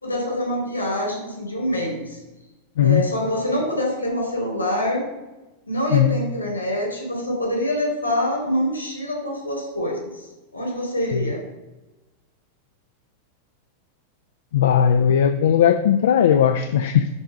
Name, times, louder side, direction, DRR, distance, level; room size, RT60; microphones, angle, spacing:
voice 1, 0.0-2.2 2.8-5.0 5.7-10.2 10.5-11.4, left 1 dB, 85° left, 0 dB, 4.1 m, -25 dB
voice 2, 14.5-17.1, left 9 dB, 60° left, 8 dB, 0.5 m, -17 dB
11.0 x 4.6 x 7.4 m, 1.1 s
figure-of-eight pair, 90°, 0 cm